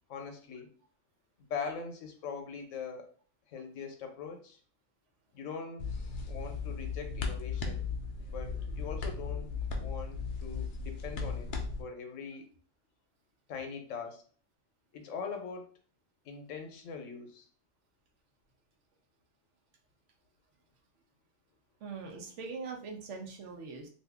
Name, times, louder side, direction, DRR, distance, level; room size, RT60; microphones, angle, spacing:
voice 1, 0.1-0.7 1.4-3.1 3.5-4.6 5.3-5.9 6.3-7.9 8.3-9.5 9.8-11.5 11.8-12.4 13.5-14.2 14.9-15.7 16.2-17.5, left 5 dB, 80° left, 5 dB, 1.0 m, -42 dB
sound 1, 5.8-11.8, left 4 dB, 60° left, 0.5 m, -36 dB
voice 2, 21.8-23.9, right 4 dB, 70° right, 3 dB, 1.0 m, -42 dB
2.6 x 2.6 x 3.4 m, 0.43 s
omnidirectional pair, 1.3 m